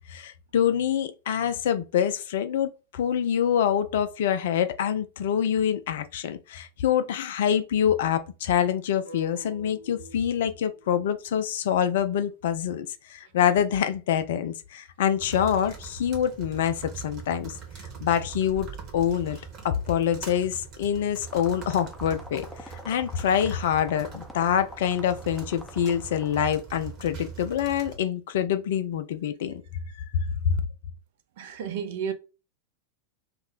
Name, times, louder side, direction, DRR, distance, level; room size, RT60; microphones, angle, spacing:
voice 1, 0.1-17.5 18.0-18.7 18.9-19.4 19.6-29.5 30.0-30.6, left 9 dB, 55° left, 0.3 m, -26 dB
sound 1, 9.0-13.1, right 1 dB, 85° right, 1.1 m, -49 dB
sound 2, 15.2-28.0, right 6 dB, 35° right, 0.9 m, -42 dB
sound 3, 21.3-26.4, left 1 dB, 5° left, 0.5 m, -46 dB
voice 2, 31.4-32.1, right 7 dB, 55° right, 0.4 m, -32 dB
2.4 x 2.0 x 3.6 m
figure-of-eight pair, 90°, 0 cm